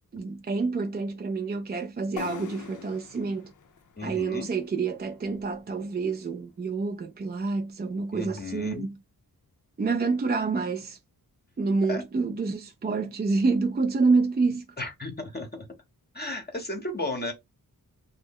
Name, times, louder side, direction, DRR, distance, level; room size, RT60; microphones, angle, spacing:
voice 1, 0.1-3.5 4.0-9.0 9.8-11.0 11.6-14.7, right 4 dB, 30° right, 0.4 m, -27 dB
sound 1, 2.2-5.8, left 8 dB, 55° left, 0.5 m, -44 dB
voice 2, 4.0-4.5 8.1-8.9 11.9-12.0 14.8-15.6 16.1-17.3, left 2 dB, 25° left, 0.8 m, -34 dB
3.2 x 2.1 x 3.5 m
wide cardioid pair, 120°, 37 cm